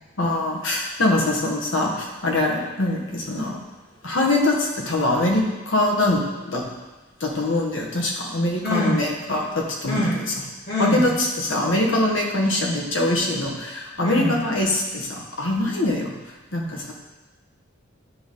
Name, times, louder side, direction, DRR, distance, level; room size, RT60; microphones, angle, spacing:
voice 1, 0.2-3.6 4.0-6.6 7.2-10.3 10.8-16.1 16.5-16.9, left 1 dB, 70° left, 0 dB, 1.3 m, -23 dB
voice 2, 8.6-9.0 9.9-10.1 10.7-11.1 14.0-14.4, left 1 dB, 50° left, -8 dB, 1.8 m, -23 dB
9.6 x 4.0 x 3.7 m, 1.2 s
head